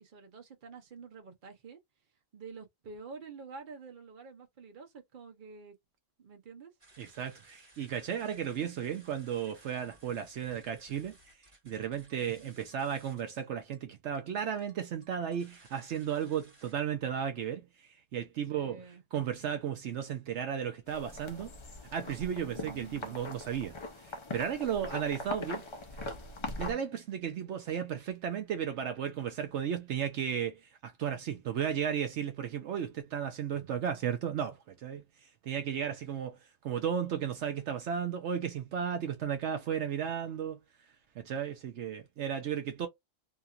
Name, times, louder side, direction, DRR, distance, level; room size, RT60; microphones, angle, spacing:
voice 1, 0.0-1.8 2.3-5.8 6.2-6.7 12.2-12.5 18.5-19.0 22.4-23.2, right 5 dB, 45° right, 0.9 m, -48 dB
sound 1, 6.8-16.7, right 1 dB, 25° right, 1.7 m, -61 dB
voice 2, 7.0-21.5 21.9-25.7 26.6-40.6 41.2-42.9, right 8 dB, 70° right, 0.9 m, -34 dB
sound 2, 20.9-26.7, left 2 dB, 40° left, 0.4 m, -41 dB
2.9 x 2.7 x 2.4 m
omnidirectional pair, 1.3 m